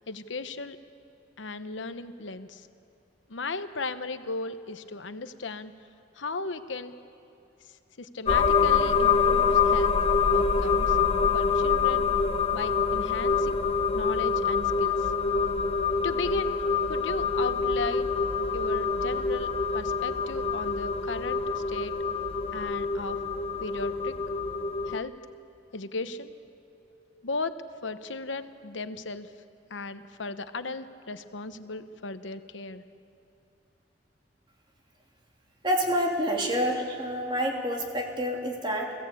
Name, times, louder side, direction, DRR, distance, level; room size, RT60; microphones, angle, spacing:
voice 1, 0.1-0.8 1.4-2.6 3.3-5.7 6.2-6.9 8.0-9.9 10.3-11.0 11.3-12.0 12.5-13.6 13.9-15.0 16.0-16.6 16.9-18.2 18.5-19.5 19.7-21.4 21.7-21.9 22.5-23.2 23.6-24.1 24.9-25.1 25.7-26.3 27.2-27.5 27.8-29.3 29.7-32.8, left 3 dB, 85° left, 10 dB, 1.0 m, -36 dB
sound 1, 8.3-25.0, left 5 dB, 30° left, 0.9 m, -26 dB
voice 2, 35.6-38.9, equal, 25° right, 0 dB, 2.9 m, -28 dB
30.0 x 17.0 x 8.6 m, 2.8 s
head